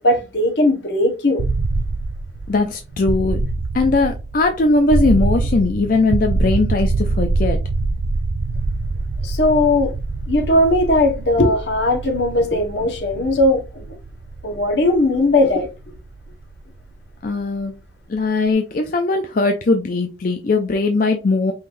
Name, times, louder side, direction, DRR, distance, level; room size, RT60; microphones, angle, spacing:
voice 1, 0.0-1.4 9.2-9.9 10.3-14.0 14.4-15.7, left 1 dB, 70° left, 1.3 m, -18 dB
sound 1, 1.4-17.2, right 3 dB, 60° right, 0.4 m, -24 dB
voice 2, 2.5-3.4 3.7-7.6 17.2-17.7 18.1-21.5, left 3 dB, 50° left, 0.5 m, -19 dB
5.5 x 3.3 x 2.6 m
head